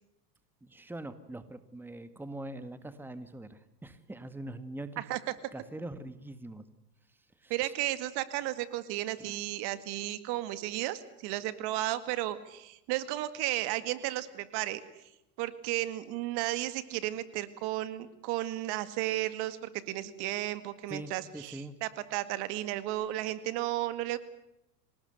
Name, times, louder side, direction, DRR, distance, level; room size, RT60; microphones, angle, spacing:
voice 1, 0.6-5.0 5.5-6.6 7.1-7.7 9.2-9.3 20.9-21.7, right 1 dB, 5° right, 11 dB, 1.7 m, -43 dB
voice 2, 7.5-14.8 15.4-24.2, right 15 dB, 55° right, 13 dB, 2.1 m, -34 dB
26.0 x 19.0 x 8.0 m, 0.85 s
hypercardioid pair, 110°, 47 cm